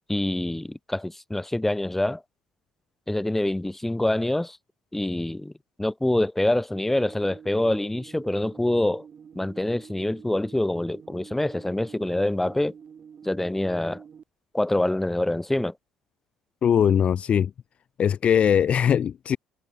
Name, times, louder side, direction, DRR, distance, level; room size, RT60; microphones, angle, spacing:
voice 1, 0.1-2.2 3.1-4.6 4.9-5.5 5.8-9.0 9.3-12.7 13.2-14.0 14.5-15.7, left 1 dB, 10° left, 3.8 m, -25 dB
sound 1, 6.7-14.2, right 7 dB, 45° right, 5.1 m, -47 dB
voice 2, 16.6-17.5 18.0-19.4, left 8 dB, 45° left, 0.5 m, -20 dB
hypercardioid pair, 55°, 3 cm